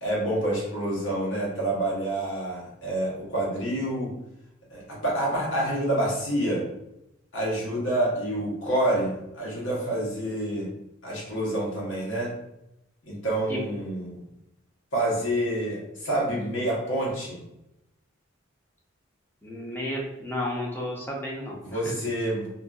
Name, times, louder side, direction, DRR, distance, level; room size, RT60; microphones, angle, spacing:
voice 1, 0.0-4.1 4.7-6.7 7.3-10.7 11.0-12.3 13.1-14.2 14.9-17.4 21.6-22.5, right 1 dB, 65° left, -5 dB, 1.0 m, -27 dB
voice 2, 19.4-21.8, left 1 dB, 10° left, -3 dB, 0.5 m, -32 dB
2.7 x 2.4 x 2.3 m, 0.87 s
head